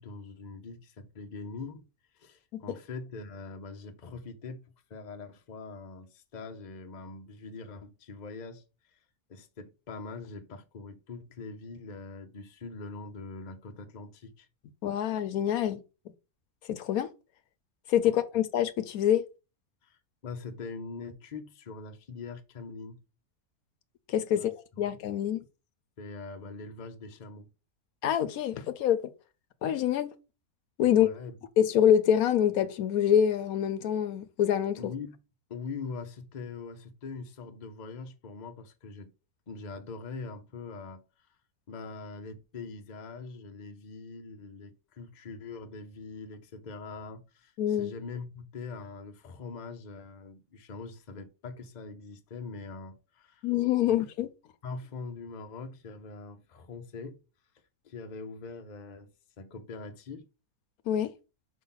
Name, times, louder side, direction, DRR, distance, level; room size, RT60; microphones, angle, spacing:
voice 1, 0.0-1.8 2.1-4.6 4.9-9.0 9.3-14.5 18.0-18.2 19.8-23.0 24.3-24.5 24.8-24.9 26.0-27.5 30.9-31.3 34.8-35.2 35.5-39.1 39.5-41.0 41.7-53.5 53.8-54.0 54.6-57.2 57.8-60.3, left 4 dB, 40° left, 0.8 m, -43 dB
voice 2, 14.8-15.8 16.7-17.1 17.9-19.2 24.1-25.4 28.0-29.0 29.6-30.1 30.8-31.1 31.6-34.9 47.6-47.9 53.4-54.3 60.9-61.1, left 10 dB, 75° left, 1.1 m, -26 dB
5.6 x 5.1 x 3.9 m
omnidirectional pair, 1.6 m